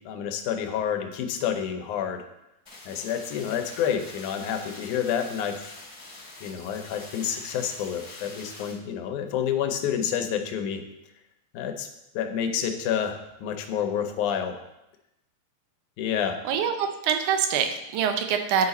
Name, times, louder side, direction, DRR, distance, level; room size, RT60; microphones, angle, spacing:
voice 1, 0.1-2.2 2.9-5.7 6.4-10.8 11.5-11.9 12.2-14.6 16.0-16.4, left 8 dB, 85° left, 6 dB, 2.2 m, -29 dB
sound 1, 2.7-8.7, left 2 dB, 10° left, 2.8 m, -45 dB
voice 2, 16.5-18.7, right 7 dB, 90° right, 6 dB, 2.2 m, -25 dB
8.5 x 4.8 x 4.1 m, 0.90 s
omnidirectional pair, 3.4 m